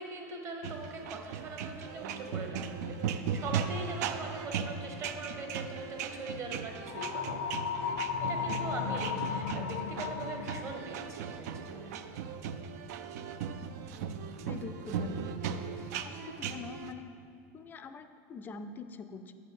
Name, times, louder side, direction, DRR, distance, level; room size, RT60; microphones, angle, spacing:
voice 1, 0.0-7.5 8.2-12.0, right 2 dB, 35° right, 2 dB, 1.1 m, -42 dB
sound 1, 0.6-16.9, right 7 dB, 80° right, 0.4 m, -38 dB
sound 2, 6.9-10.9, left 7 dB, 85° left, 0.5 m, -35 dB
voice 2, 14.4-15.3 16.0-17.1 17.5-19.3, left 4 dB, 20° left, 10 dB, 0.4 m, -44 dB
8.6 x 4.2 x 6.5 m, 2.4 s
supercardioid pair, 140°, 9 cm